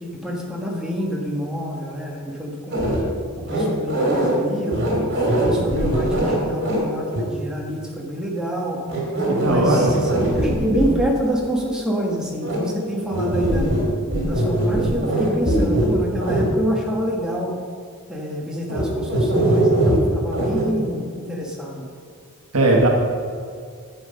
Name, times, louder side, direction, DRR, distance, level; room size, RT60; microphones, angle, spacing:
voice 1, 0.0-2.8 3.5-8.8 9.4-13.7 14.2-17.6 18.1-21.9, equal, 5° right, -3 dB, 1.5 m, -27 dB
sound 1, 2.7-3.0 3.5-4.3 4.7-6.8 7.1-7.2 8.9-10.9 12.4-12.6 13.1-13.8 14.1-15.9 16.2-16.4 18.7-18.8 19.1-20.0 20.3-20.6, right 1 dB, 50° right, 2.9 m, -21 dB
voice 2, 9.3-9.9 22.5-22.9, right 2 dB, 85° right, 0 dB, 1.2 m, -17 dB
10.5 x 8.0 x 5.3 m, 2.2 s
head